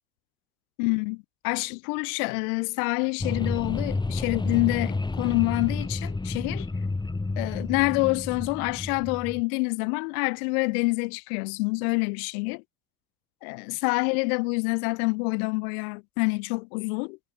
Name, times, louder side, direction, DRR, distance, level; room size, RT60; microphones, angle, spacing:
voice 1, 0.8-6.7 7.4-12.6 13.4-17.2, left 32 dB, 85° left, 2.2 m, -27 dB
sound 1, 3.2-9.4, left 3 dB, 10° left, 1.5 m, -30 dB
supercardioid pair, 110°, 43 cm